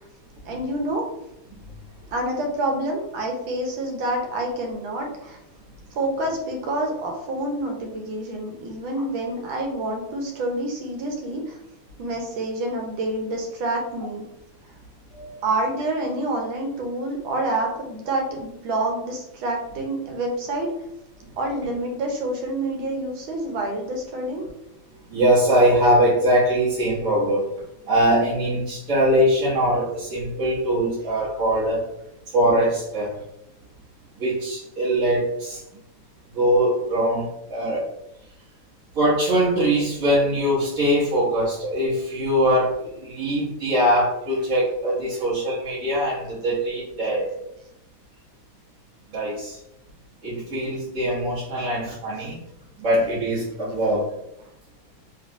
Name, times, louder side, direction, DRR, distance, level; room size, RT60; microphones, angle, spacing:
voice 1, 0.5-1.1 2.1-5.4 6.0-11.6 12.0-14.2 15.4-20.7 21.4-24.5 51.6-51.7, right 1 dB, 80° right, 2 dB, 1.5 m, -27 dB
voice 2, 25.1-27.5 27.9-31.8 32.3-33.2 34.2-35.6 36.3-37.9 38.9-47.4 49.1-49.6 50.2-52.4 52.8-54.1, equal, 50° right, -10 dB, 1.2 m, -22 dB
3.4 x 3.2 x 2.6 m, 0.82 s
omnidirectional pair, 2.2 m